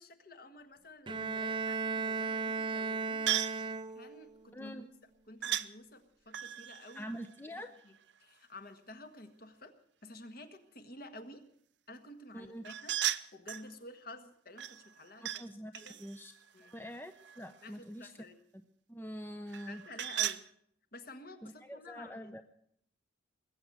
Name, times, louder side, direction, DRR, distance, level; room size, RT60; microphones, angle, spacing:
voice 1, 0.0-3.4 3.9-4.9 5.3-7.1 7.8-9.7 10.0-11.4 11.9-12.9 13.3-15.2 15.7-16.0 16.5-16.8 17.6-18.4 19.7-20.5 20.9-22.4, left 2 dB, 50° left, 7 dB, 1.6 m, -51 dB
Bowed string instrument, 1.1-4.3, right 4 dB, 25° right, 0.6 m, -35 dB
sound 1, 3.3-3.6 5.4-5.7 6.3-8.1 12.6-13.7 14.6-15.4 15.7-17.6 19.5-20.4, right 12 dB, 65° right, 0.7 m, -37 dB
voice 2, 4.5-4.8 6.9-7.7 12.3-12.6 15.2-16.3 16.7-18.1 18.9-19.8 21.4-22.4, equal, 10° left, 7 dB, 0.6 m, -45 dB
20.5 x 8.6 x 7.7 m, 0.67 s
head